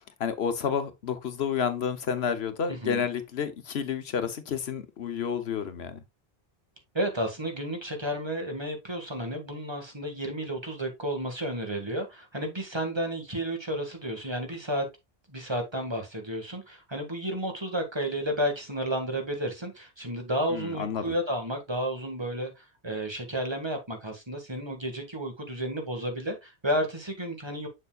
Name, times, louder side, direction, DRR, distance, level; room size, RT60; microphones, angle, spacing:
voice 1, 0.2-6.0 20.5-21.1, left 7 dB, 80° left, 1.2 m, -30 dB
voice 2, 2.7-3.0 6.9-14.9 15.3-27.7, equal, 25° right, 1.8 m, -32 dB
7.2 x 6.9 x 2.4 m
omnidirectional pair, 1.0 m